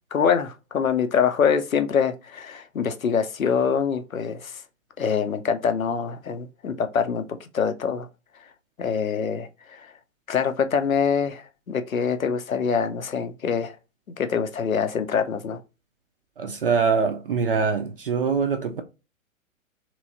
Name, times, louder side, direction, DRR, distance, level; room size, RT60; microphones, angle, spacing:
voice 1, 0.1-4.6 5.0-8.1 8.8-9.9 10.3-13.8 14.2-15.6, left 6 dB, 80° left, 0.7 m, -24 dB
voice 2, 16.4-18.8, right 5 dB, 45° right, 0.4 m, -23 dB
3.0 x 3.0 x 2.6 m
figure-of-eight pair, 120°, 41 cm